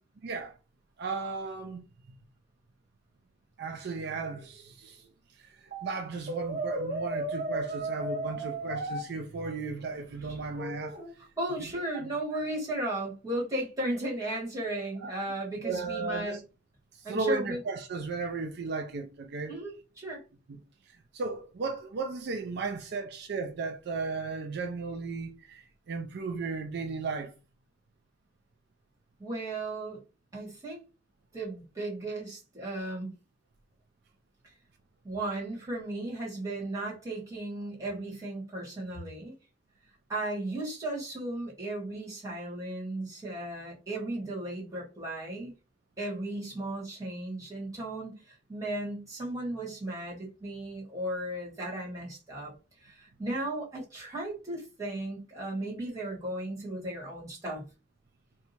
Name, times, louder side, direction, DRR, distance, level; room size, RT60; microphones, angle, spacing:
voice 1, 0.2-0.5 1.0-1.9 3.6-5.1 5.4-11.0 11.6-11.7 11.9-12.1 15.0-15.1 15.6-16.4 16.9-19.6 20.5-20.6 21.1-27.3, right 4 dB, 60° right, 0.4 m, -35 dB
Brass instrument, 6.3-9.0 10.6-11.1, right 1 dB, 35° right, 0.9 m, -34 dB
voice 2, 11.4-16.4 17.0-17.6 19.5-20.2 29.2-30.0 30.3-30.8 31.3-33.1 35.0-39.3 40.1-45.5 46.0-52.5 52.8-57.6, right 1 dB, 20° right, 1.5 m, -35 dB
2.7 x 2.3 x 4.2 m
head